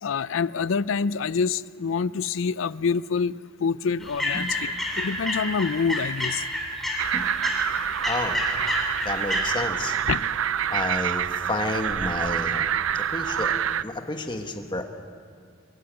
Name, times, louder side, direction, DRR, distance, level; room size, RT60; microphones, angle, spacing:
voice 1, 0.0-6.4 10.1-10.3, left 5 dB, 70° left, 18 dB, 0.5 m, -26 dB
sound 1, 4.0-9.4, left 1 dB, ahead, 3.6 m, -29 dB
sound 2, 7.0-13.8, right 9 dB, 80° right, 0.5 m, -27 dB
voice 2, 8.1-8.4 9.0-10.0 10.7-12.7 13.1-13.5 13.8-14.8, left 2 dB, 25° left, 5 dB, 1.5 m, -30 dB
23.0 x 15.5 x 8.8 m, 2.2 s
head